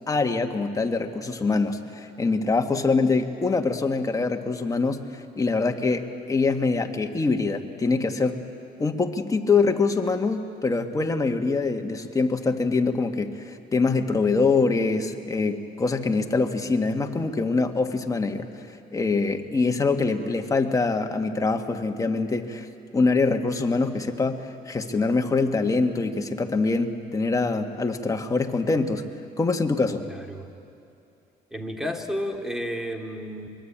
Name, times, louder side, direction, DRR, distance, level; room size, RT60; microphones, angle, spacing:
voice 1, 0.1-8.4 8.8-18.5 18.9-22.7 22.9-29.0 29.4-30.0, left 3 dB, 20° left, 4 dB, 1.6 m, -24 dB
voice 2, 30.0-30.5 31.5-33.5, equal, 5° right, 4 dB, 2.3 m, -32 dB
23.5 x 22.0 x 8.8 m, 2.6 s
cardioid pair, 110°, 17 cm